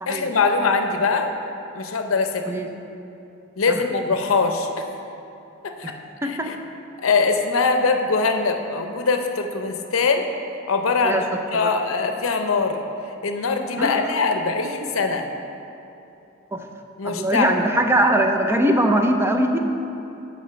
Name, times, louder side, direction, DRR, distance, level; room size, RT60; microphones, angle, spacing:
voice 1, 0.1-1.3 1.7-2.5 3.6-4.9 5.6-5.9 6.2-6.6 7.0-10.3 10.7-11.2 11.5-15.3 17.0-17.5, left 4 dB, 80° left, 6 dB, 0.6 m, -22 dB
voice 2, 6.2-6.5 11.0-11.2 11.5-11.7 13.8-14.1 16.5-16.6 17.0-19.6, right 1 dB, 10° right, 4 dB, 0.5 m, -21 dB
6.4 x 5.1 x 6.9 m, 2.8 s
head